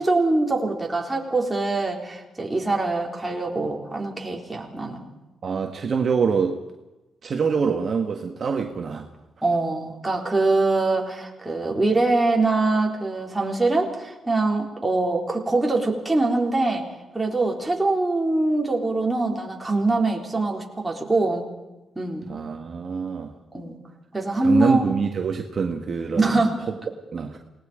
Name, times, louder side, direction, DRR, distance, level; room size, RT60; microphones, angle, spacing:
voice 1, 0.0-5.1 9.4-16.9 17.1-21.5 22.0-22.2 23.5-23.8 24.1-24.9 26.2-26.5, right 2 dB, 10° right, -1 dB, 4.0 m, -23 dB
voice 2, 5.4-6.6 7.2-9.1 22.3-23.3 24.4-26.4 27.1-27.4, right 5 dB, 45° right, 3 dB, 1.7 m, -25 dB
28.5 x 19.0 x 5.2 m, 1.1 s
cardioid pair, 130°, 0 cm